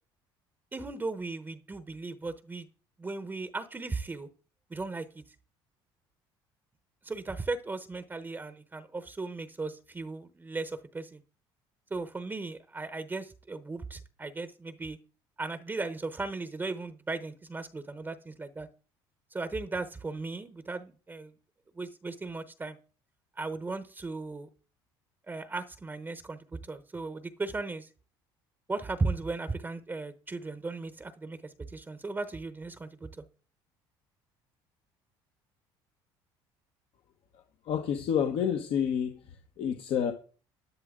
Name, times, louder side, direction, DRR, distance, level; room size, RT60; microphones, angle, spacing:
voice 1, 0.7-2.7 3.0-4.3 4.7-5.2 7.0-11.2 11.9-15.0 15.4-18.7 19.3-21.3 21.7-22.8 23.4-24.5 25.3-27.9 28.7-33.2, right 3 dB, 20° right, 0.9 m, -36 dB
voice 2, 37.7-39.2 39.6-40.1, left 8 dB, 65° left, 1.1 m, -28 dB
11.0 x 10.5 x 3.7 m
supercardioid pair, 90°, 10 cm